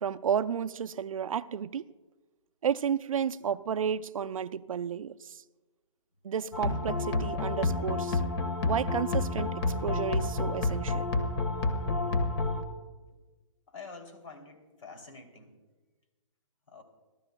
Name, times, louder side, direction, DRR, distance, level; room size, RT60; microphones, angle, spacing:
voice 1, 0.0-1.9 2.6-5.4 6.2-8.2 8.6-11.1, right 8 dB, 85° right, 0.5 m, -32 dB
sound 1, 6.5-12.6, left 3 dB, 50° left, 1.4 m, -29 dB
voice 2, 13.7-15.5 16.7-16.8, left 4 dB, 70° left, 2.9 m, -47 dB
25.5 x 12.5 x 2.2 m
hypercardioid pair, 145°, 17 cm